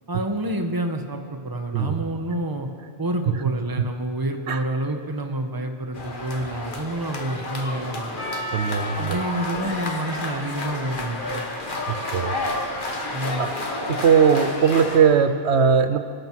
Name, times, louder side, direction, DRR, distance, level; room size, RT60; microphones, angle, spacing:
voice 1, 0.1-2.7 3.0-8.1 8.9-11.5 13.1-13.5, right 1 dB, 20° right, 5 dB, 1.1 m, -28 dB
sound 1, 5.9-15.0, left 2 dB, 50° left, 1.7 m, -30 dB
Percussion, 8.2-12.7, left 2 dB, 25° left, 5.3 m, -37 dB
voice 2, 8.5-9.2 12.1-12.3 13.4-13.5 13.9-16.0, right 7 dB, 75° right, 10 dB, 1.0 m, -19 dB
24.5 x 11.5 x 4.6 m, 2.1 s
omnidirectional pair, 1.1 m